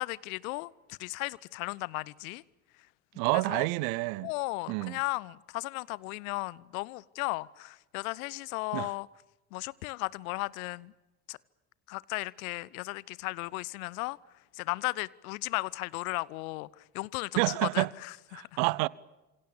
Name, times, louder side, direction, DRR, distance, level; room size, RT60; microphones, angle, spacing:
voice 1, 0.0-2.4 3.3-3.7 4.2-9.1 9.5-10.9 11.3-11.4 11.9-14.2 14.5-18.5, left 23 dB, 60° left, 0.9 m, -35 dB
voice 2, 3.2-4.3 4.7-5.0 8.7-8.9 17.4-17.9 18.3-18.9, right 24 dB, 55° right, 0.9 m, -28 dB
27.5 x 25.5 x 7.0 m
figure-of-eight pair, 55°, 48 cm